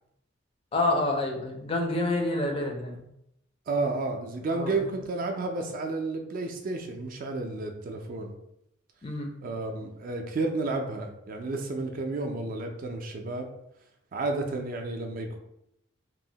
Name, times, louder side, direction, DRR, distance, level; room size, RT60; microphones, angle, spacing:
voice 1, 0.7-3.0 4.5-4.8 9.0-9.3, left 2 dB, 30° left, 1 dB, 0.4 m, -28 dB
voice 2, 3.7-8.3 9.4-13.5 14.1-15.4, right 3 dB, 45° right, 4 dB, 0.3 m, -31 dB
2.9 x 2.0 x 2.7 m, 0.79 s
head